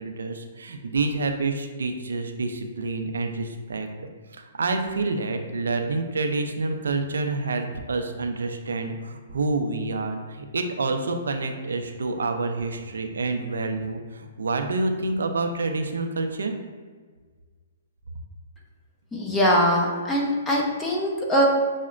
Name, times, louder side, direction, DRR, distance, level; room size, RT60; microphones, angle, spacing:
voice 1, 0.0-3.9 4.6-16.5, right 3 dB, 85° right, 5 dB, 0.4 m, -28 dB
voice 2, 19.1-21.5, equal, 10° left, -2 dB, 0.6 m, -22 dB
5.7 x 2.1 x 2.4 m, 1.5 s
hypercardioid pair, 140°, 0 cm